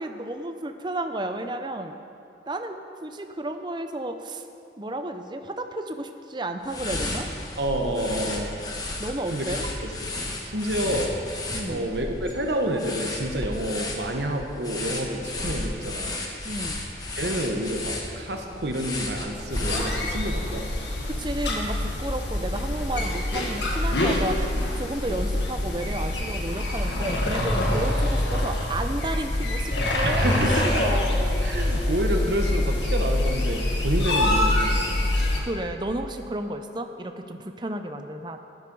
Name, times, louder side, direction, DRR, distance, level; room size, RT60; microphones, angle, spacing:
voice 1, 0.0-2.0 2.5-4.5 4.8-7.3 9.0-9.6 11.5-11.9 16.4-16.8 21.0-24.4 24.7-31.2 35.4-38.4, right 1 dB, 25° right, 7 dB, 0.6 m, -32 dB
sound 1, 6.6-20.3, left 2 dB, 20° left, 1.2 m, -33 dB
voice 2, 7.6-8.6 9.3-10.2 10.4-11.1 11.7-16.2 17.2-20.6 27.6-27.9 30.0-30.8 31.4-35.0, right 1 dB, 75° right, 3 dB, 1.3 m, -29 dB
sound 2, 19.5-35.4, left 1 dB, 85° left, 1.8 m, -25 dB
12.0 x 11.5 x 5.4 m, 2.6 s
head